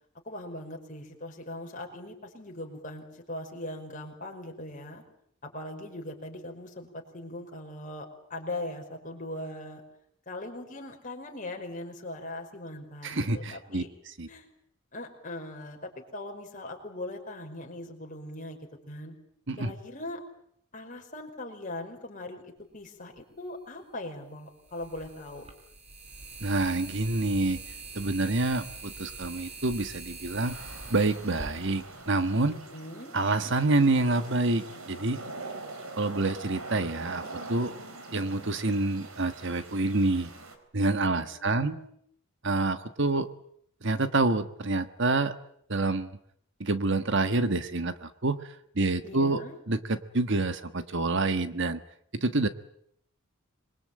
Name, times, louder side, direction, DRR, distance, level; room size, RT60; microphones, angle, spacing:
voice 1, 0.2-5.0 5.4-9.8 10.3-13.9 14.3-14.5 14.9-18.6 18.9-19.2 19.6-20.2 20.7-25.5 32.5-33.1 41.0-41.9 49.0-49.6, left 1 dB, 40° left, 2 dB, 5.5 m, -40 dB
voice 2, 13.0-13.8 14.2-14.3 19.5-19.7 26.4-27.6 27.9-30.5 30.9-32.5 33.1-35.2 36.0-37.2 37.5-37.7 38.1-40.3 40.7-41.8 42.4-43.3 43.8-45.3 45.7-46.2 46.6-48.4 48.7-51.8 52.1-52.5, right 2 dB, 55° right, 11 dB, 1.4 m, -27 dB
sound 1, 23.2-23.3 24.6-32.6, right 3 dB, 30° right, 3.9 m, -44 dB
sound 2, 30.5-40.6, right 3 dB, 80° right, 4.2 m, -43 dB
26.5 x 22.5 x 8.8 m, 0.69 s
head